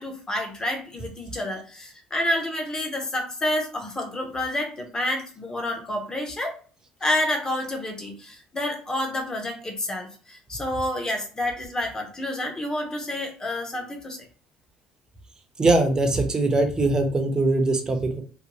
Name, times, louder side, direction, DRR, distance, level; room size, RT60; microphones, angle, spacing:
voice 1, 0.0-6.6 7.0-14.3, left 1 dB, 20° left, 2 dB, 0.8 m, -29 dB
voice 2, 15.6-18.2, right 2 dB, 25° right, 5 dB, 0.6 m, -21 dB
2.6 x 2.1 x 2.9 m, 0.40 s
supercardioid pair, 95°, 3 cm